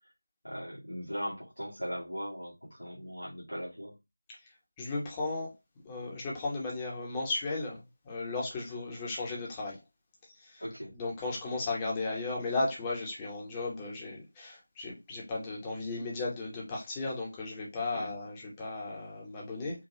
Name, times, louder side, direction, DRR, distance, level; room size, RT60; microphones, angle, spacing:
voice 1, 0.4-4.0 10.6-10.9 17.9-18.1, equal, 80° left, 1.8 m, -39 dB
voice 2, 4.8-5.5 5.8-9.8 10.4-10.6 10.9-19.8, left 3 dB, 10° left, 0.9 m, -35 dB
4.8 x 2.2 x 2.7 m
figure-of-eight pair, 165°, 0 cm